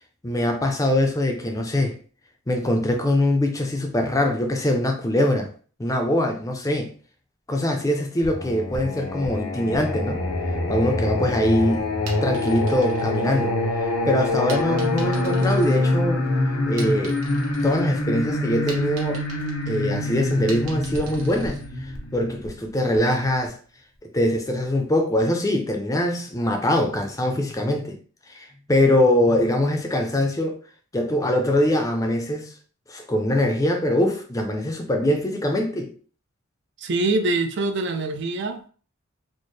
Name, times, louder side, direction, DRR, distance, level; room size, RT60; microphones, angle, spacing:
voice 1, 0.2-2.0 2.5-5.5 5.8-6.9 7.5-10.2 10.7-11.8 12.2-13.6 14.1-16.3 16.7-17.2 17.6-19.2 19.7-23.6 24.1-28.0 28.3-30.6 30.9-32.5 32.9-35.9, left 1 dB, 15° left, 0.5 m, -23 dB
Singing, 8.2-23.0, left 2 dB, 85° left, 0.7 m, -25 dB
sound 1, 11.9-13.9 14.5-16.3 16.6-17.9 18.3-21.7, right 3 dB, 85° right, 1.0 m, -42 dB
voice 2, 36.8-38.7, right 2 dB, 55° right, 0.4 m, -24 dB
4.3 x 2.1 x 3.2 m
head